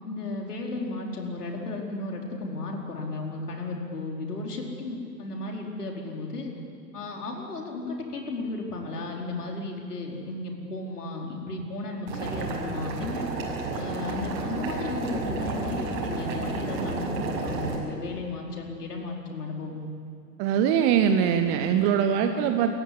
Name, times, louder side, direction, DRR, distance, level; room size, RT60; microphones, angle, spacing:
voice 1, 0.0-6.5 6.9-13.3 13.7-19.9, left 2 dB, 65° left, 0 dB, 4.7 m, -34 dB
Boiling, 12.1-17.8, right 3 dB, 35° right, 6.4 m, -31 dB
voice 2, 20.4-22.7, right 8 dB, 15° right, 7 dB, 0.5 m, -22 dB
28.5 x 15.0 x 9.6 m, 2.4 s
figure-of-eight pair, 110°, 49 cm